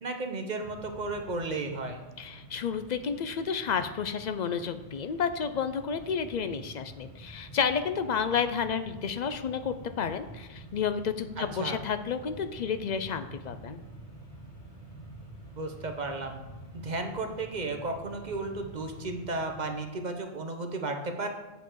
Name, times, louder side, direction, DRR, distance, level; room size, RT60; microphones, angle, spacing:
voice 1, 0.0-2.0 11.4-11.8 15.5-16.4 16.8-21.3, right 2 dB, 40° right, 4 dB, 1.0 m, -34 dB
Mechanisms, 0.6-20.1, right 2 dB, 35° left, 1.7 m, -48 dB
voice 2, 2.2-13.8, left 6 dB, 50° left, 10 dB, 0.5 m, -31 dB
8.2 x 6.8 x 4.6 m, 1.1 s
omnidirectional pair, 1.1 m